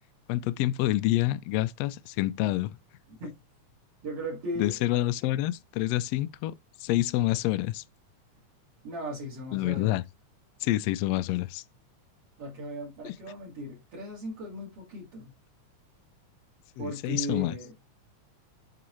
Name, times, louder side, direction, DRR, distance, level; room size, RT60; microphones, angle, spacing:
voice 1, 0.3-2.8 4.6-6.5 6.8-7.8 9.5-10.0 10.6-11.6 13.0-13.1 16.8-17.5, left 16 dB, 85° left, 1.4 m, -27 dB
voice 2, 4.0-4.8 8.8-10.0 12.4-15.3 16.8-17.7, equal, 50° right, 3.1 m, -37 dB
8.5 x 4.0 x 3.1 m
omnidirectional pair, 3.5 m